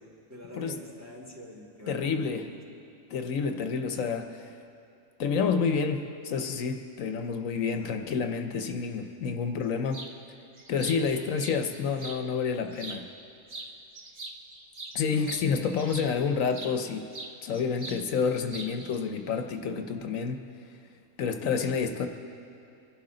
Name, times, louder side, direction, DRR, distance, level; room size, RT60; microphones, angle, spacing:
voice 1, 0.0-2.6 7.7-8.0 11.1-11.7 15.0-15.9, left 1 dB, 10° right, -2 dB, 1.9 m, -47 dB
voice 2, 1.9-2.4 3.1-4.5 5.2-10.0 10.7-13.1 14.9-17.0 17.4-20.4 21.2-22.1, left 5 dB, 75° left, 6 dB, 1.1 m, -29 dB
sound 1, 9.9-10.1 10.6-12.2 12.7-13.2 13.5-16.8 17.1-18.0 18.3-19.0, right 2 dB, 35° right, 0.9 m, -42 dB
24.0 x 11.5 x 3.8 m, 2.6 s
omnidirectional pair, 1.4 m